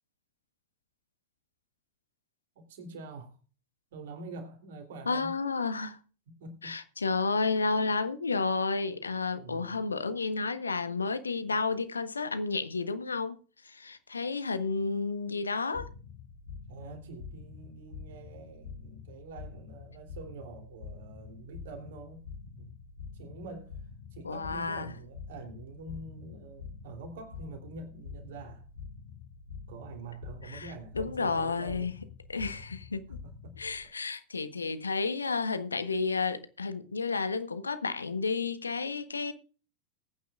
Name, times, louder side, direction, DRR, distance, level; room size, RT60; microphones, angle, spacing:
voice 1, 2.5-3.4 3.9-5.3 6.4-6.7 9.3-9.8 16.7-22.2 22.5-22.8 23.1-23.8 24.1-28.7 29.7-31.9 32.3-32.6 33.2-33.5, right 3 dB, 55° right, 3.2 m, -46 dB
voice 2, 5.1-6.0 6.6-13.4 13.6-15.9 24.2-24.9 30.5-31.9 32.3-33.2 33.6-39.3, left 4 dB, 75° left, 1.2 m, -31 dB
sound 1, 15.7-33.8, left 6 dB, 60° left, 1.7 m, -46 dB
21.0 x 9.5 x 2.5 m
figure-of-eight pair, 90°, 0 cm